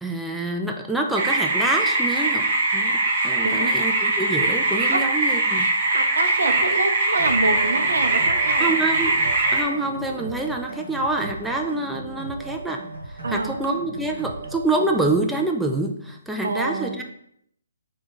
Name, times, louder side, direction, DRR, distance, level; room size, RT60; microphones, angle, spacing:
voice 1, 0.0-2.5 2.7-3.0 3.2-5.7 8.6-9.2 9.5-12.8 13.3-17.0, right 2 dB, 5° right, 1 dB, 0.3 m, -26 dB
sound 1, 1.2-9.6, right 2 dB, 40° right, 0.9 m, -21 dB
voice 2, 5.9-8.8 13.2-13.6 16.4-17.0, right 2 dB, 65° right, 7 dB, 0.5 m, -26 dB
sound 2, 7.2-15.2, right 2 dB, 80° right, 1.0 m, -36 dB
3.6 x 2.3 x 4.3 m, 0.71 s
figure-of-eight pair, 135°, 0 cm